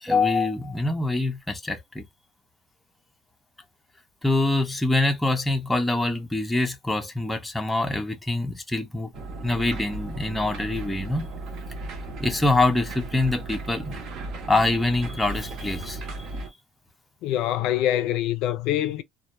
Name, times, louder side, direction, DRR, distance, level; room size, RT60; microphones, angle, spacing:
voice 1, 0.0-2.0 4.2-9.1 9.4-11.3 12.2-14.0 14.5-16.0, left 2 dB, 5° left, 0.4 m, -24 dB
sound 1, 9.1-16.5, right 2 dB, 55° right, 0.7 m, -36 dB
voice 2, 17.2-19.0, left 12 dB, 75° left, 0.3 m, -24 dB
2.1 x 2.1 x 2.9 m
cardioid pair, 170°, 0 cm